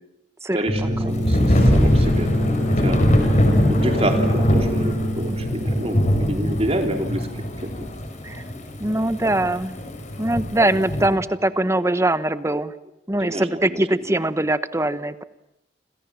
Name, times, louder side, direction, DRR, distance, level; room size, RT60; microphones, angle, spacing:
voice 1, 0.5-3.1 3.7-7.4 13.2-13.8 14.1-14.2, right 1 dB, 35° right, 4 dB, 3.5 m, -28 dB
sound 1, 0.7-6.0, equal, 25° left, 6.1 m, -25 dB
Thunder / Rain, 1.3-11.1, equal, 45° left, 6.0 m, -21 dB
voice 2, 8.8-9.8 10.2-12.7 13.1-15.2, right 1 dB, 15° right, 13 dB, 1.0 m, -22 dB
29.5 x 27.0 x 7.2 m, 0.84 s
head